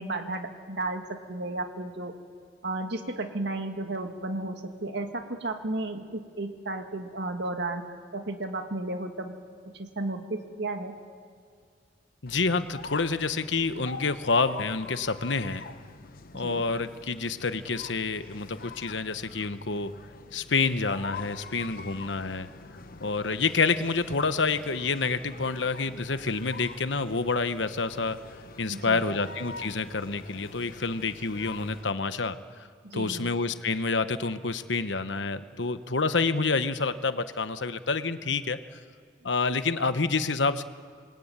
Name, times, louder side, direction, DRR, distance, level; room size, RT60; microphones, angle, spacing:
voice 1, 0.0-2.1 2.6-7.9 8.1-9.3 9.7-11.0 16.3-16.6 28.7-29.2 32.8-33.3, right 2 dB, 65° right, 5 dB, 2.1 m, -33 dB
voice 2, 12.2-15.7 16.3-19.9 20.3-22.5 23.0-28.2 28.6-32.4 32.9-38.6 39.2-40.6, left 4 dB, 70° left, 11 dB, 1.1 m, -28 dB
sound 1, 12.3-31.9, left 4 dB, 50° left, 1.0 m, -45 dB
28.0 x 22.5 x 8.9 m, 2.1 s
head